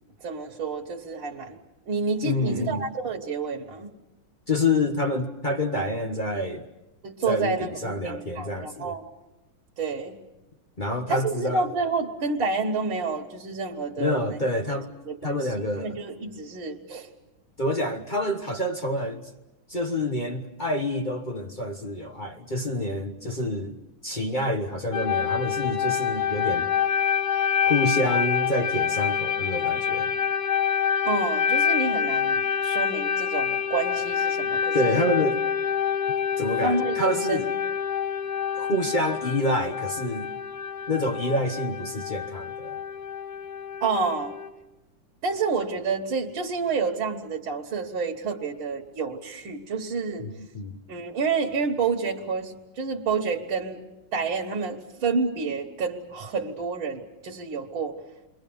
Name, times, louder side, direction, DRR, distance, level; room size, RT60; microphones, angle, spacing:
voice 1, 0.2-1.6 1.9-3.9 7.0-9.0 9.8-10.2 11.1-14.4 15.1-17.1 31.0-35.1 36.6-37.4 43.8-44.3 45.2-50.3 50.9-53.8 54.1-57.9, right 4 dB, 70° right, 2.2 m, -29 dB
voice 2, 2.2-2.9 4.5-6.7 7.2-8.9 10.8-11.6 14.0-14.9 15.2-15.9 17.6-19.3 19.7-23.8 24.0-26.7 27.7-30.1 34.7-35.4 36.4-37.5 38.5-40.3 40.9-42.8 50.2-50.7, left 1 dB, 30° left, 0.9 m, -27 dB
sound 1, 24.9-44.5, left 7 dB, 85° left, 3.1 m, -27 dB
29.0 x 22.5 x 7.0 m
omnidirectional pair, 2.3 m